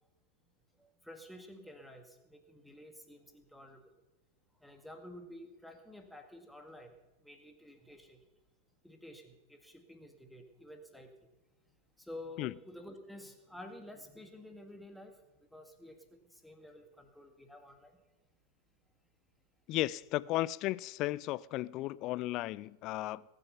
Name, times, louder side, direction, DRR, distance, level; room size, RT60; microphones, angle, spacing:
voice 1, 0.8-3.8 4.6-8.2 8.8-11.3 12.0-18.0, left 1 dB, ahead, 1.9 m, -51 dB
voice 2, 19.7-23.2, left 17 dB, 40° left, 0.4 m, -35 dB
20.0 x 9.2 x 5.7 m
figure-of-eight pair, 90°, 0 cm